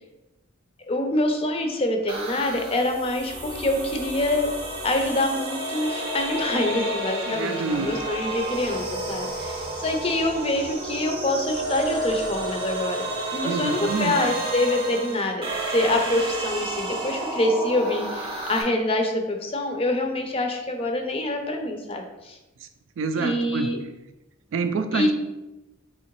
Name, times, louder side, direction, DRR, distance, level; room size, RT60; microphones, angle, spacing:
voice 1, 0.9-4.5 4.8-13.0 13.3-22.4 23.2-23.8 24.9-25.1, left 1 dB, 30° left, 4 dB, 0.4 m, -25 dB
sound 1, 2.1-18.6, right 2 dB, 30° right, 0.6 m, -31 dB
voice 2, 7.3-7.9 13.4-14.2 23.0-23.7 24.5-25.1, right 5 dB, 70° right, 8 dB, 0.3 m, -27 dB
3.6 x 3.0 x 2.9 m, 0.99 s
head